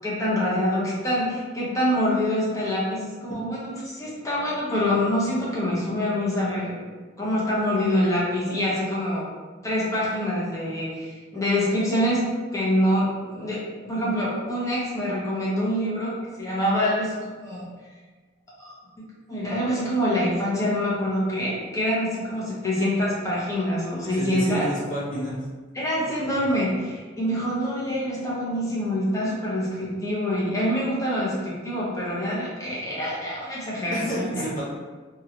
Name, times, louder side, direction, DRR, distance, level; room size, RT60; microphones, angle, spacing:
voice 1, 0.0-6.8 7.2-9.3 9.6-12.3 12.5-17.6 18.6-18.8 19.3-24.7 25.7-34.4, equal, 15° left, -7 dB, 0.9 m, -25 dB
voice 2, 24.0-25.4 33.9-34.6, equal, 45° left, -8 dB, 1.1 m, -30 dB
2.9 x 2.5 x 2.9 m, 1.4 s
head